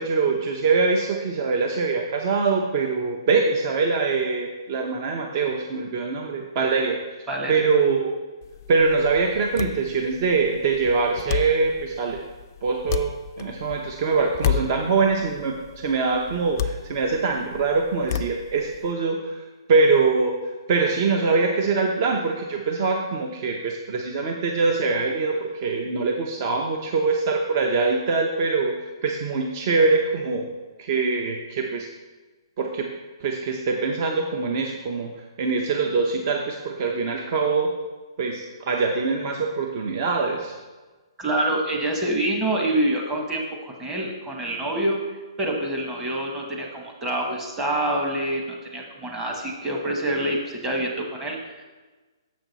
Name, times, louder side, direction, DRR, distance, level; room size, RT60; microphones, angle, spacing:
voice 1, 0.0-7.0 7.5-8.1 8.7-12.2 12.6-13.1 13.4-19.4 19.7-20.3 20.7-28.7 29.0-30.5 30.8-31.9 32.6-32.9 33.2-35.1 35.4-37.7 38.2-40.5, right 4 dB, 35° right, 2 dB, 0.6 m, -23 dB
voice 2, 7.3-7.6 41.2-45.0 45.4-51.6, right 1 dB, 15° right, 0 dB, 1.0 m, -26 dB
sound 1, 8.4-18.9, left 9 dB, 40° left, 0.3 m, -32 dB
7.3 x 6.0 x 4.0 m, 1.3 s
hypercardioid pair, 160°, 3 cm